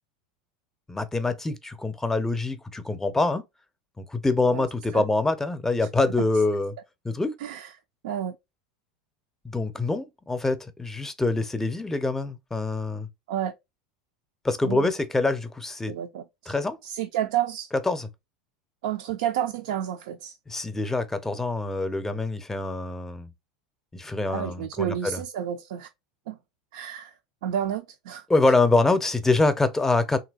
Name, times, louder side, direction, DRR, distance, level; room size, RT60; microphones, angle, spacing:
voice 1, 0.9-3.4 4.0-6.7 7.0-7.3 9.4-13.1 14.4-15.9 16.5-16.8 17.8-18.1 20.5-23.3 23.9-25.2 28.3-30.2, left 3 dB, 10° left, 0.6 m, -25 dB
voice 2, 8.0-8.4 13.3-13.5 14.6-14.9 15.9-16.5 16.8-17.7 18.8-20.4 24.3-25.9 26.3-26.4 26.7-27.1 27.4-28.2, right 10 dB, 65° right, 0.4 m, -30 dB
3.3 x 2.8 x 2.3 m
hypercardioid pair, 85°, 4 cm